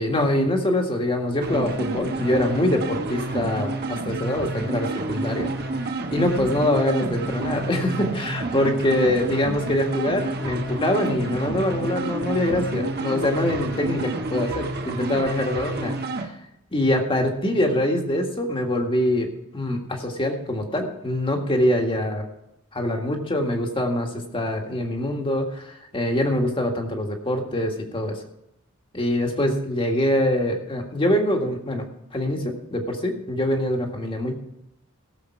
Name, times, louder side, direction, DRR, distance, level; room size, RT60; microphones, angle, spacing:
voice 1, 0.0-5.5 6.1-16.3 16.7-22.2 22.7-28.2 28.9-31.8 32.1-34.3, left 1 dB, 25° left, 2 dB, 1.8 m, -24 dB
sound 1, 1.4-16.3, right 2 dB, 50° right, 1.3 m, -29 dB
17.0 x 7.2 x 4.6 m, 0.85 s
head